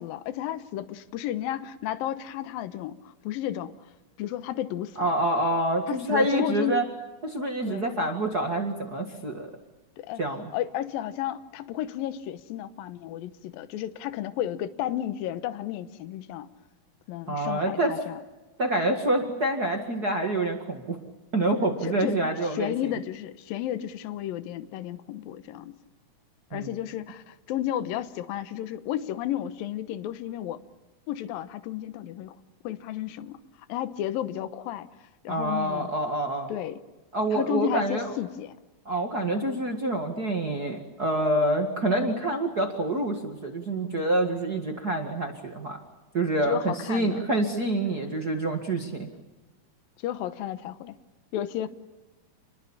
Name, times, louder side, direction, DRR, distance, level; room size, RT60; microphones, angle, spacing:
voice 1, 0.0-3.7 4.2-5.1 5.9-6.8 7.7-7.9 10.0-10.2 10.5-16.5 17.1-18.2 21.8-22.2 22.5-25.7 26.5-30.6 31.1-32.4 32.6-33.4 33.7-34.9 35.2-35.9 36.5-36.8 37.3-38.5 46.4-47.2 50.0-50.9 51.3-51.7, left 12 dB, 75° left, 2.7 m, -32 dB
voice 2, 5.0-6.8 7.2-9.5 10.2-10.5 17.3-17.9 18.6-21.0 21.3-22.7 26.5-26.7 35.3-36.5 37.1-38.1 38.8-45.8 46.1-49.1, right 1 dB, 35° right, 1.7 m, -27 dB
28.0 x 21.5 x 7.2 m
omnidirectional pair, 4.3 m